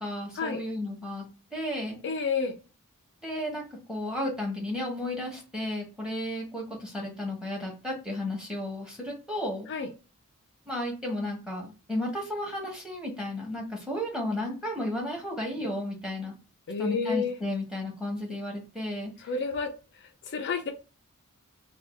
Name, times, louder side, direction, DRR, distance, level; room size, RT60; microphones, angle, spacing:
voice 1, 0.0-1.2 1.5-2.0 3.2-9.7 10.7-16.3 16.8-19.3, left 1 dB, 5° right, -1 dB, 1.1 m, -33 dB
voice 2, 2.0-2.6 9.7-9.9 16.7-17.4 19.2-19.7 20.0-20.7, left 5 dB, 55° left, 3 dB, 0.4 m, -30 dB
2.6 x 2.3 x 3.4 m, 0.32 s
head